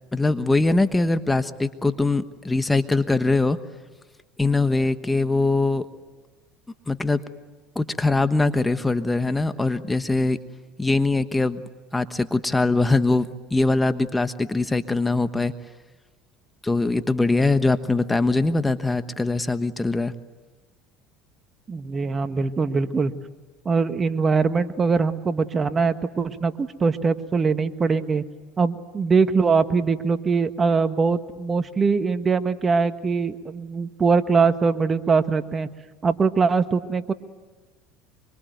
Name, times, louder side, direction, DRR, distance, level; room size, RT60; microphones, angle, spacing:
voice 1, 0.1-3.6 4.4-5.9 6.9-7.2 7.7-10.4 10.8-11.6 11.9-15.5 16.6-20.1, left 2 dB, 10° left, 10 dB, 1.2 m, -22 dB
voice 2, 21.7-23.1 23.6-28.2 28.6-35.7 36.0-37.1, right 4 dB, 30° right, 10 dB, 1.5 m, -22 dB
25.5 x 24.5 x 9.4 m, 1.2 s
supercardioid pair, 90°, 0 cm